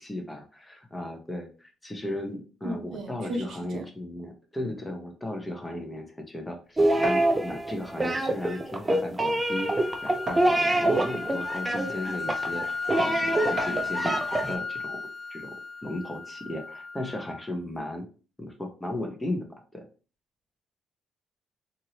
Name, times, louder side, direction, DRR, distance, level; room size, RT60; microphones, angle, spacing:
voice 1, 0.0-15.6 15.8-18.0 18.4-19.8, left 1 dB, 15° left, 3 dB, 0.8 m, -36 dB
voice 2, 2.6-3.8, right 1 dB, 70° right, 4 dB, 0.7 m, -35 dB
sound 1, 6.8-14.5, right 1 dB, 20° right, 0.5 m, -25 dB
sound 2, 7.0-7.3 8.4-8.5 9.0-9.1 10.3-10.9 11.7-11.8 13.6-14.0, right 2 dB, 50° right, 1.0 m, -35 dB
sound 3, 9.5-17.5, left 4 dB, 40° left, 0.3 m, -35 dB
3.0 x 2.6 x 2.8 m, 0.36 s
cardioid pair, 90°, 0 cm